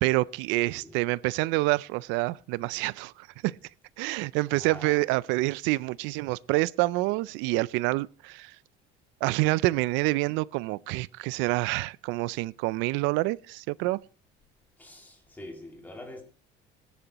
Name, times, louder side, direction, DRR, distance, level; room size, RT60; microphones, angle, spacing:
voice 1, 0.0-3.6 4.0-8.6 9.2-14.0, right 21 dB, 85° right, 0.4 m, -27 dB
voice 2, 4.5-5.0 14.8-16.2, left 1 dB, 10° left, 2.3 m, -45 dB
18.0 x 10.5 x 3.0 m
cardioid pair, 160°, 19 cm